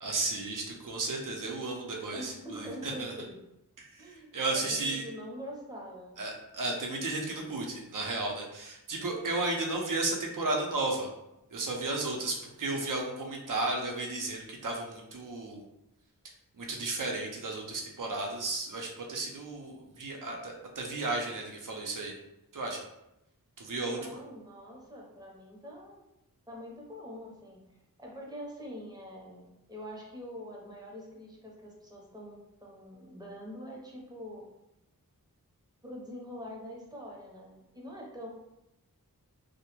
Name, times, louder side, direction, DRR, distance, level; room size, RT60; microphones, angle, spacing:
voice 1, 0.0-3.1 3.8-5.0 6.2-11.1 11.5-15.6 16.6-22.1 22.5-22.8 23.6-24.2, right 2 dB, 60° right, 0 dB, 0.6 m, -34 dB
voice 2, 2.1-3.4 4.0-6.2 23.7-26.0 26.5-34.5 35.8-38.3, equal, 10° right, -3 dB, 0.7 m, -44 dB
2.2 x 2.0 x 3.0 m, 0.89 s
wide cardioid pair, 50°, 36 cm